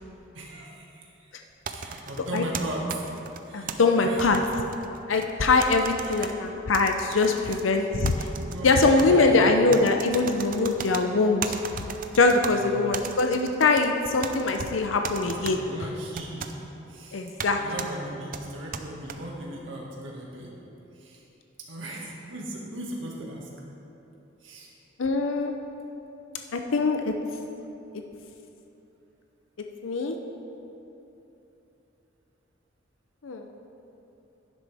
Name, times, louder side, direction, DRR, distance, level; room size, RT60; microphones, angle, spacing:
voice 1, 0.3-1.4 1.7-3.1 3.5-4.3 6.0-6.3 8.4-9.5 12.5-12.9 15.4-16.6 16.9-20.5 20.9-21.2 21.7-23.5 24.4-24.7, right 1 dB, 75° right, -2 dB, 1.9 m, -37 dB
sound 1, 1.7-3.8 4.2-5.3 5.6-6.3 6.7-7.6 8.0-9.1 9.7-11.0 11.4-12.5 12.9-13.9 14.2-14.7 15.0-15.6 16.2-16.5 17.4-17.5 17.8-17.9 18.3-19.2, right 6 dB, 45° right, 0.5 m, -36 dB
voice 2, 3.5-4.4 5.1-8.3 8.6-11.8 12.1-15.6 17.1-17.6 25.0-25.5 26.5-27.1 29.8-30.2 33.2-33.5, left 3 dB, 80° left, 4 dB, 0.6 m, -23 dB
11.0 x 10.5 x 3.5 m, 3.0 s
head